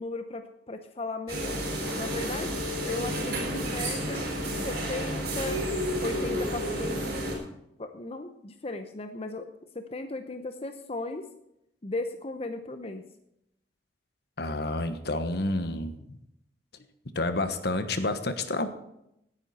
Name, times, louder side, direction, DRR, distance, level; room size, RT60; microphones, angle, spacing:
voice 1, 0.0-1.6 2.0-2.6 2.8-5.6 6.0-7.0 7.8-9.5 9.7-11.3 11.8-13.0, left 2 dB, 35° left, 7 dB, 0.8 m, -36 dB
sound 1, 1.3-7.4, equal, 60° right, 5.3 m, -31 dB
voice 2, 14.4-16.2 17.1-18.7, left 2 dB, 65° left, 9 dB, 1.3 m, -29 dB
17.5 x 10.0 x 4.3 m, 0.80 s
head